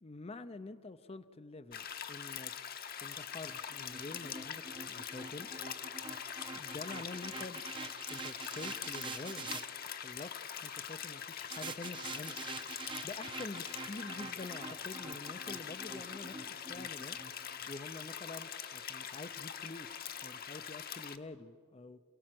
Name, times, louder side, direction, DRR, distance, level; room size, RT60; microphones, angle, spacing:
voice 1, 0.0-2.5 3.0-5.5 6.5-7.6 8.1-12.4 13.0-17.2 17.7-22.0, left 2 dB, 30° left, 12 dB, 0.5 m, -47 dB
sound 1, 1.7-21.2, left 8 dB, 45° left, 0.9 m, -43 dB
sound 2, 3.5-9.6 11.5-17.7, right 4 dB, 25° right, 0.7 m, -46 dB
28.5 x 17.5 x 7.7 m, 2.2 s
head